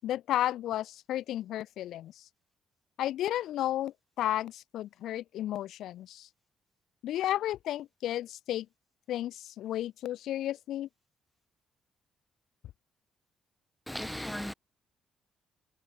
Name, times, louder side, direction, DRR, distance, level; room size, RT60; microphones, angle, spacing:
voice 1, 0.0-2.1 3.0-6.3 7.0-8.7 9.1-10.9, left 13 dB, 80° left, 5.5 m, -33 dB
voice 2, 13.9-14.5, left 1 dB, 5° left, 2.3 m, -36 dB
cardioid pair, 90°, 0 cm